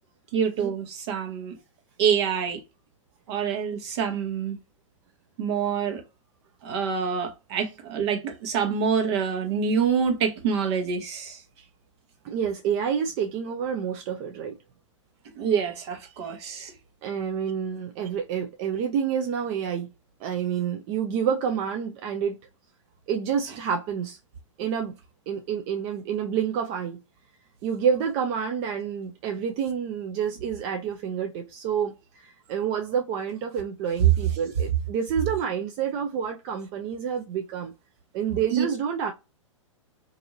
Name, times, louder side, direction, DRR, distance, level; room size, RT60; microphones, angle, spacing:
voice 1, 0.3-1.5 2.0-2.6 3.3-4.6 5.4-6.0 6.6-11.4 15.4-16.7 38.5-38.6, right 6 dB, 55° right, 1.0 m, -26 dB
voice 2, 12.2-14.5 17.0-19.9 20.2-22.4 23.1-24.2 24.6-24.9 25.3-27.0 27.6-37.7 38.1-39.1, right 7 dB, 35° right, 0.4 m, -28 dB
2.7 x 2.6 x 2.6 m
hypercardioid pair, 110°, 17 cm